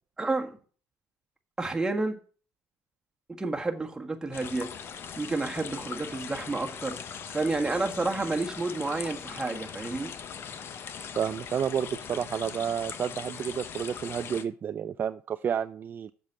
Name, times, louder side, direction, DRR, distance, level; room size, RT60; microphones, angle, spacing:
voice 1, 0.2-0.5 1.6-2.2 3.4-4.7 5.2-10.1, right 3 dB, 10° right, 1.5 m, -30 dB
sound 1, 4.3-14.4, left 7 dB, 50° left, 1.0 m, -40 dB
voice 2, 11.2-16.1, right 8 dB, 40° right, 0.4 m, -30 dB
7.4 x 6.6 x 7.3 m
cardioid pair, 110°, 5 cm